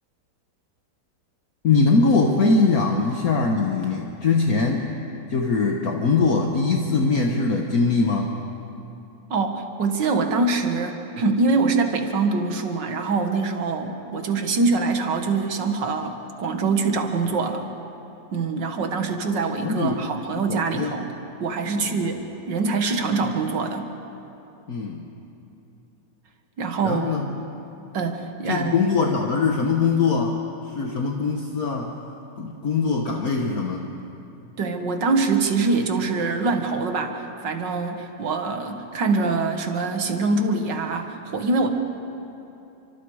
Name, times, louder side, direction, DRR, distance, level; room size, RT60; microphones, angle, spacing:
voice 1, 1.6-4.9 5.3-8.3 19.6-20.0 20.5-20.9 21.7-22.0 24.7-25.0 26.8-27.3 28.5-31.9 32.4-33.8, left 4 dB, 55° left, 1 dB, 1.7 m, -22 dB
voice 2, 9.3-17.7 18.3-21.1 21.4-23.9 26.6-27.1 27.9-28.8 34.6-41.7, right 3 dB, 80° right, 5 dB, 2.2 m, -24 dB
29.5 x 25.5 x 4.9 m, 2.9 s
omnidirectional pair, 1.9 m